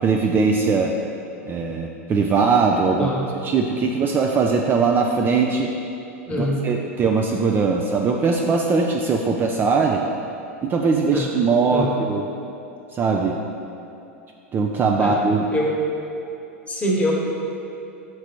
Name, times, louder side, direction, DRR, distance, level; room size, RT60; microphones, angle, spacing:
voice 1, 0.0-0.9 1.5-3.1 3.4-5.7 6.3-10.0 10.6-12.2 12.9-13.4 14.5-15.5, right 4 dB, 25° right, 1 dB, 0.4 m, -20 dB
voice 2, 6.3-6.6 11.1-11.3 11.7-11.9 15.0-15.1 15.5-15.8 16.7-17.1, equal, 15° left, -3 dB, 1.2 m, -23 dB
4.9 x 4.5 x 4.3 m, 2.7 s
hypercardioid pair, 100°, 8 cm